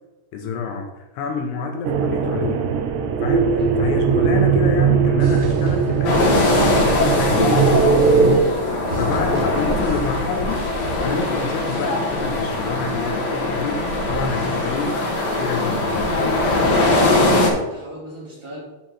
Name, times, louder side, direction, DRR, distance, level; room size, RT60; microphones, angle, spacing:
voice 1, 0.3-2.8 3.2-7.7 9.0-10.6 11.0-15.0 15.4-16.1, left 4 dB, 75° left, 3 dB, 2.7 m, -28 dB
sound 1, 1.8-8.4, right 5 dB, 80° right, 2.8 m, -19 dB
sound 2, 5.2-6.8 7.0-7.6 8.0-8.6 8.9-10.5 10.7-11.3 11.7-12.3, right 1 dB, 50° right, 2.5 m, -37 dB
sound 3, 6.0-17.5, left 2 dB, 55° left, 1.9 m, -21 dB
voice 2, 8.8-9.8 16.5-18.6, equal, 15° right, -6 dB, 1.1 m, -35 dB
9.1 x 4.6 x 5.7 m, 1.1 s
omnidirectional pair, 5.4 m